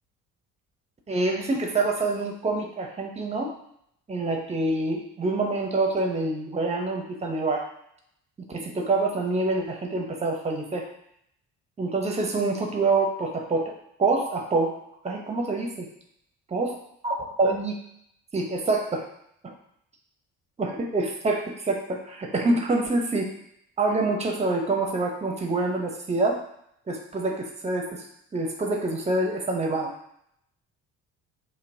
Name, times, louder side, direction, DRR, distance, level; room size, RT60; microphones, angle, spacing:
voice 1, 1.1-3.5 4.1-7.6 8.5-10.9 11.8-13.7 14.0-14.7 15.0-15.9 16.5-16.7 17.0-17.8 18.3-19.0 19.4-19.5 20.6-23.3 23.8-26.4 26.9-29.9, right 2 dB, 15° right, 2 dB, 0.7 m, -26 dB
5.2 x 2.1 x 2.7 m, 0.73 s
figure-of-eight pair, 50°, 43 cm